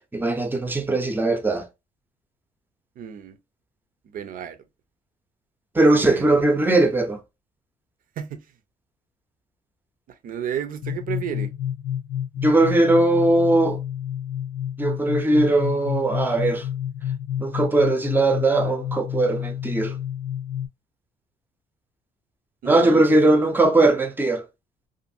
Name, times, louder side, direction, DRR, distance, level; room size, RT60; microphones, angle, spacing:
voice 1, 0.1-1.6 5.7-7.2 12.4-13.8 14.8-16.6 17.4-19.9 22.7-24.4, right 2 dB, 10° right, 0.6 m, -19 dB
voice 2, 3.0-3.4 4.1-4.6 5.9-6.4 8.2-8.4 10.2-11.5 22.6-23.4, right 9 dB, 55° right, 0.6 m, -32 dB
sound 1, 10.8-20.7, left 10 dB, 55° left, 0.5 m, -29 dB
2.5 x 2.5 x 2.5 m
cardioid pair, 110°, 17 cm